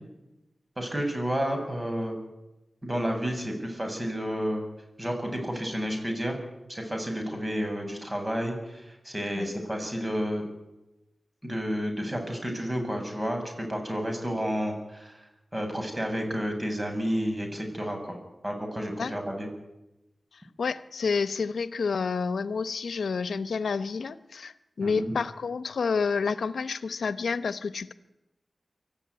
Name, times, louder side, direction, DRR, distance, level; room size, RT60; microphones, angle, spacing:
voice 1, 0.8-2.2 2.8-4.6 5.0-6.4 6.7-10.5 11.4-15.1 15.5-18.2 18.4-19.5 24.8-25.1, equal, 30° right, 4 dB, 7.4 m, -31 dB
voice 2, 20.6-27.9, left 5 dB, 85° left, 14 dB, 0.9 m, -29 dB
24.5 x 14.5 x 9.6 m, 0.96 s
cardioid pair, 40°, 0 cm